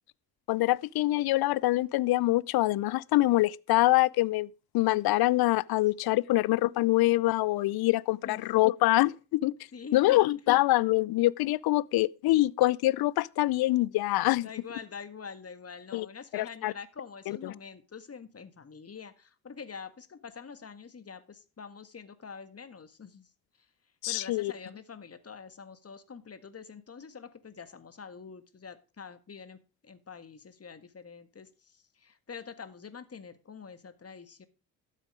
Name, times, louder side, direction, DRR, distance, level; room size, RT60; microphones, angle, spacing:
voice 1, 0.5-4.5 4.7-9.5 9.9-14.5 15.9-16.1 16.3-16.7 17.3-17.5 24.0-24.5, left 17 dB, 55° left, 0.6 m, -25 dB
voice 2, 9.7-10.2 14.4-23.3 24.1-34.5, left 6 dB, 30° left, 1.7 m, -46 dB
12.5 x 7.5 x 4.9 m
hypercardioid pair, 50°, 45 cm